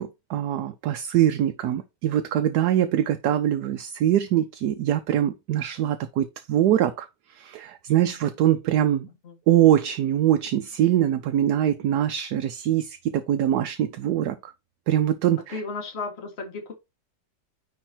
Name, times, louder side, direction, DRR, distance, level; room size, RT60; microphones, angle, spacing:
voice 1, 0.0-7.1 7.3-9.1 9.5-14.5 14.9-15.6, right 11 dB, 70° right, 1.1 m, -23 dB
voice 2, 15.5-16.7, left 3 dB, 35° left, 1.6 m, -34 dB
9.5 x 3.2 x 4.4 m
omnidirectional pair, 2.0 m